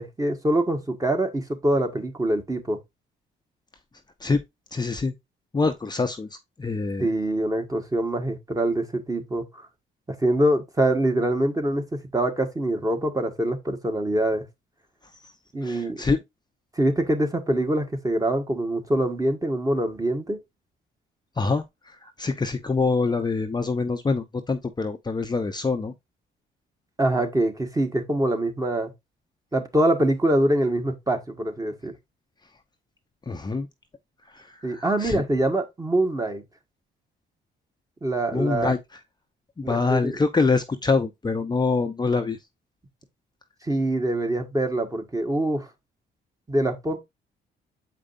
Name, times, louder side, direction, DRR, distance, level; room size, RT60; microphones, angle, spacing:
voice 1, 0.0-2.8 7.0-9.7 10.1-14.4 15.5-16.0 16.7-20.4 27.0-28.9 29.5-31.9 34.6-36.4 38.0-38.7 39.6-40.2 43.6-45.7 46.5-47.0, right 1 dB, 15° right, 1.5 m, -24 dB
voice 2, 4.7-5.1 5.5-6.3 6.6-7.1 15.2-15.3 15.6-16.2 21.4-25.9 33.3-33.7 34.3-35.2 38.3-38.8 39.6-42.4, left 4 dB, 20° left, 0.7 m, -25 dB
7.5 x 5.0 x 2.6 m
cardioid pair, 90°, 20 cm